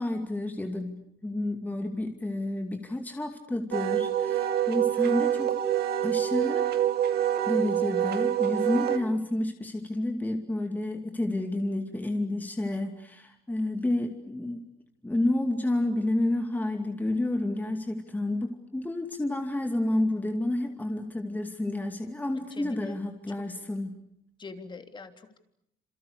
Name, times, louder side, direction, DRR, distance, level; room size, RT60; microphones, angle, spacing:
voice 1, 0.0-5.6 6.0-6.7 7.5-14.6 15.0-24.0, left 1 dB, 10° left, 5 dB, 2.5 m, -30 dB
Wind instrument woodwind instrument, 3.7-9.0, right 10 dB, 70° right, 2.4 m, -26 dB
voice 2, 22.5-23.0 23.3-23.4 24.4-25.4, left 4 dB, 25° left, 7 dB, 3.3 m, -43 dB
28.5 x 28.0 x 6.9 m, 0.74 s
cardioid pair, 110°, 17 cm